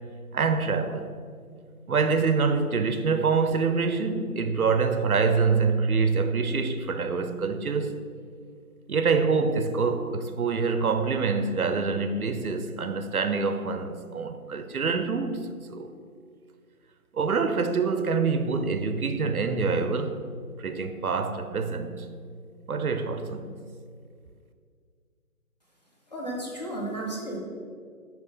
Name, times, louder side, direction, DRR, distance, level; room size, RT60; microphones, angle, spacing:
voice 1, 0.3-1.1 1.9-7.9 8.9-15.4 15.7-15.9 17.1-20.2 20.6-22.1 22.7-23.5, right 4 dB, 75° right, 0.7 m, -25 dB
voice 2, 26.1-27.4, right 1 dB, 30° left, 0.9 m, -33 dB
8.5 x 3.1 x 5.2 m
figure-of-eight pair, 165°, 44 cm